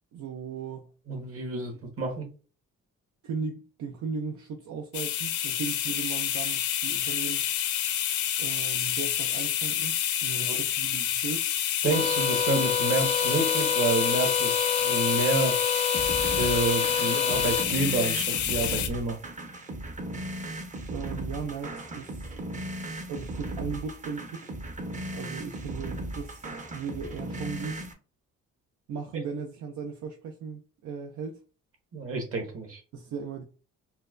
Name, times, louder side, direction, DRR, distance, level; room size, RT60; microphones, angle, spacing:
voice 1, 0.1-0.9 3.2-7.5 8.4-11.5 20.9-22.4 23.1-24.5 25.1-27.8 28.9-31.4 32.9-33.4, right 5 dB, 75° right, 0.6 m, -37 dB
voice 2, 1.1-2.3 10.5-10.6 11.8-15.6 16.2-19.2 31.9-32.8, right 3 dB, 50° right, 1.4 m, -29 dB
sound 1, 4.9-18.9, left 10 dB, 75° left, 0.6 m, -28 dB
sound 2, 11.9-17.7, left 5 dB, 20° left, 0.5 m, -28 dB
sound 3, 15.9-27.9, right 1 dB, 25° right, 0.7 m, -37 dB
4.3 x 2.2 x 2.4 m
cardioid pair, 90°, 30 cm